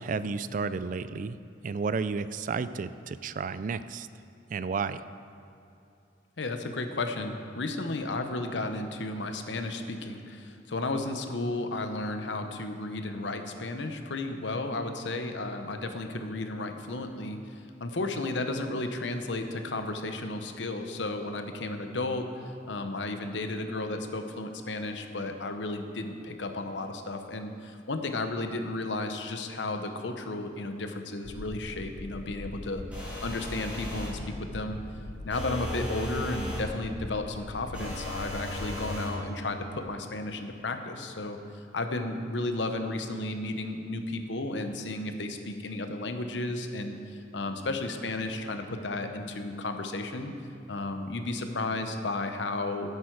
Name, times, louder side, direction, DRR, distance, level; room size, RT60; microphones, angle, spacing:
voice 1, 0.0-1.4 1.6-4.1 4.5-5.0, right 5 dB, 45° right, 14 dB, 0.3 m, -32 dB
voice 2, 6.4-22.3 22.7-32.8 33.2-34.8 35.2-41.4 41.7-50.3 50.7-53.0, left 2 dB, 85° left, 6 dB, 0.9 m, -33 dB
sound 1, 31.2-39.0, left 2 dB, 45° left, 0.5 m, -42 dB
sound 2, 32.9-34.2 35.3-36.7 37.7-39.2, equal, 5° right, 2.8 m, -37 dB
15.0 x 8.2 x 4.7 m, 2.6 s
head